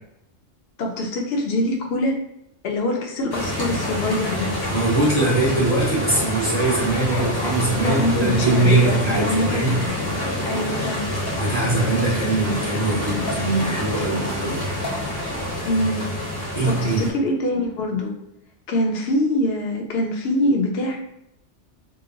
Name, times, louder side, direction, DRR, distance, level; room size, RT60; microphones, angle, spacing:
voice 1, 0.8-2.1 2.6-4.5 7.8-10.2 10.4-11.1 15.7-16.0 16.6-18.1 18.7-21.0, left 1 dB, 65° left, 1 dB, 0.9 m, -24 dB
sound 1, 3.3-17.1, left 1 dB, 25° left, 0.7 m, -27 dB
voice 2, 4.7-9.8 11.4-14.6 16.5-17.1, right 2 dB, 35° right, -7 dB, 0.8 m, -22 dB
2.9 x 2.0 x 3.7 m, 0.81 s
omnidirectional pair, 1.2 m